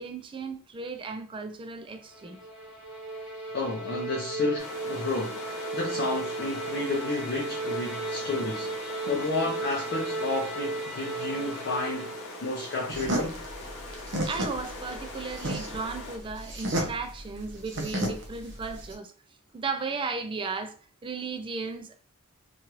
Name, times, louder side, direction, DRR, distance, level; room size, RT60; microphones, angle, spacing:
voice 1, 0.0-2.4 14.3-19.1 19.5-20.7 21.0-22.0, right 4 dB, 25° right, 0.3 m, -35 dB
sound 1, 1.9-12.5, right 3 dB, 5° right, 1.5 m, -35 dB
voice 2, 3.5-12.1 12.4-13.4, left 2 dB, 50° left, 0.6 m, -31 dB
sound 2, 4.6-16.2, left 2 dB, 75° left, 1.0 m, -42 dB
sound 3, 12.9-18.9, right 1 dB, 55° right, 0.7 m, -32 dB
3.0 x 2.4 x 3.0 m
head